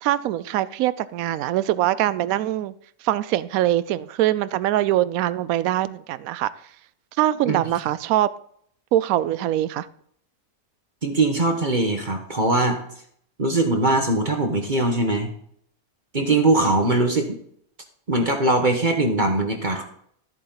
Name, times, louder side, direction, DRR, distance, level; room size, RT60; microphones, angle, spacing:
voice 1, 0.0-2.7 3.0-6.5 7.2-8.3 8.9-9.9, right 13 dB, 75° right, 17 dB, 1.0 m, -23 dB
voice 2, 11.0-12.8 13.4-15.3 16.1-17.4 18.1-19.8, right 2 dB, 35° right, 3 dB, 1.4 m, -21 dB
13.5 x 8.6 x 4.0 m, 0.65 s
omnidirectional pair, 1.6 m